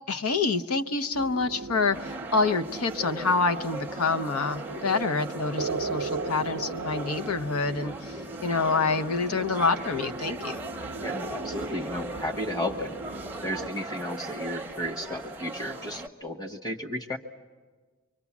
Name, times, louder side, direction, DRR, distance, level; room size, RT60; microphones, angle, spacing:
voice 1, 0.1-10.7, left 4 dB, 85° left, 9 dB, 0.8 m, -27 dB
sound 1, 1.1-13.7, right 4 dB, 80° right, 0.6 m, -38 dB
sound 2, 1.9-16.1, right 2 dB, 10° right, 0.7 m, -39 dB
voice 2, 11.0-13.0 13.4-17.2, left 1 dB, 20° left, 4 dB, 1.2 m, -33 dB
25.5 x 23.5 x 7.2 m, 1.4 s
head